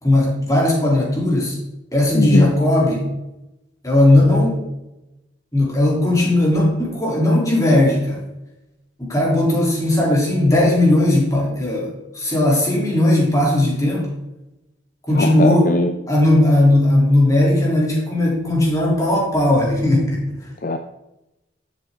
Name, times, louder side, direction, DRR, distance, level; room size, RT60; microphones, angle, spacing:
voice 1, 0.0-1.6 1.9-3.1 3.8-4.6 5.5-8.2 9.0-14.1 15.1-15.7 16.1-20.4, left 1 dB, 15° left, -3 dB, 3.0 m, -17 dB
voice 2, 2.1-2.5 15.1-15.9 20.6-20.8, left 2 dB, 45° left, 6 dB, 0.5 m, -20 dB
12.0 x 7.5 x 3.7 m, 0.94 s
head